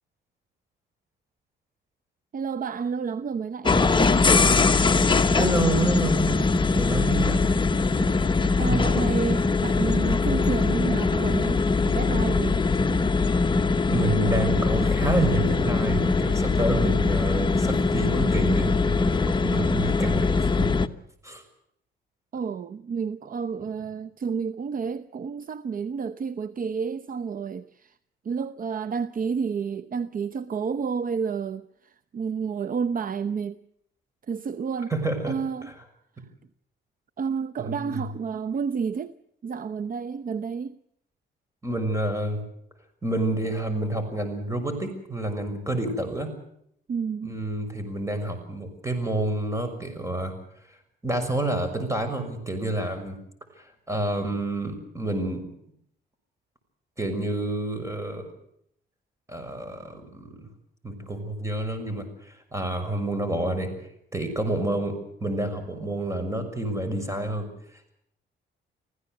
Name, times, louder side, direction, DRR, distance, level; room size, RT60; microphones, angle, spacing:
voice 1, 2.3-4.2 8.6-12.6 22.3-27.9 28.2-33.6 34.3-34.9 35.3-35.7 37.2-39.1 39.4-40.8 46.9-47.4, right 6 dB, 45° right, 0.8 m, -30 dB
sound 1, 3.6-20.9, left 4 dB, 25° left, 1.2 m, -22 dB
voice 2, 5.4-7.5 8.6-8.9 13.9-20.8 21.2-21.4 34.9-35.4 35.7-35.8 37.6-38.1 41.6-42.4 43.0-46.3 47.2-50.3 51.0-53.2 53.6-55.4 57.0-58.3 59.3-60.4 60.8-63.7 64.1-67.5, right 2 dB, 15° right, 6.2 m, -29 dB
25.0 x 16.0 x 8.0 m
cardioid pair, 90°, 20 cm